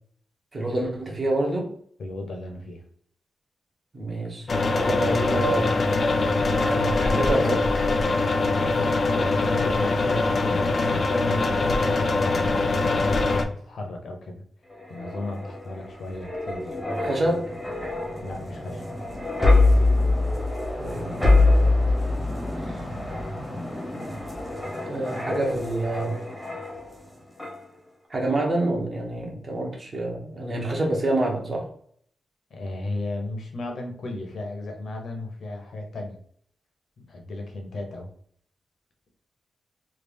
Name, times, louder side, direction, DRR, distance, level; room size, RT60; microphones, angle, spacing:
voice 1, 0.5-1.7 3.9-5.8 6.6-7.7 17.0-17.5 20.8-21.9 22.6-22.8 24.9-26.2 28.1-31.7, right 2 dB, 35° right, -1 dB, 0.9 m, -27 dB
voice 2, 2.0-2.8 9.1-14.4 14.9-16.8 18.2-18.8 32.5-36.2 37.0-38.1, left 2 dB, 65° left, 2 dB, 0.7 m, -35 dB
sound 1, 4.5-13.4, left 3 dB, 35° left, 0.3 m, -23 dB
sound 2, 14.7-27.0 27.4-27.6, left 2 dB, 5° left, 0.8 m, -25 dB
3.2 x 2.4 x 3.3 m, 0.62 s
wide cardioid pair, 165°, 0 cm